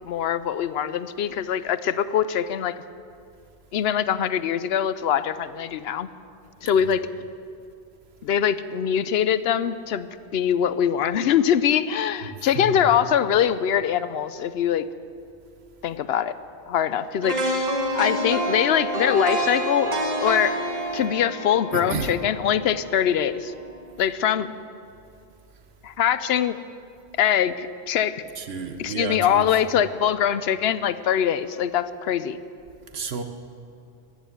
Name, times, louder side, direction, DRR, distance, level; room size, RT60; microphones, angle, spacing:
voice 1, 0.0-2.8 3.7-6.1 6.6-7.1 8.2-14.9 15.8-16.3 16.7-17.7 17.9-19.9 20.2-20.6 20.9-23.5 24.0-24.5 25.8-26.6 27.2-28.2 28.8-32.4, left 9 dB, 75° left, 14 dB, 0.8 m, -23 dB
voice 2, 12.5-12.9 21.7-22.1 28.4-29.5 32.9-33.2, right 5 dB, 75° right, 7 dB, 1.2 m, -31 dB
sound 1, 17.2-23.2 23.6-23.8, right 1 dB, 40° right, 1.8 m, -28 dB
14.5 x 10.5 x 8.0 m, 2.6 s
omnidirectional pair, 1.1 m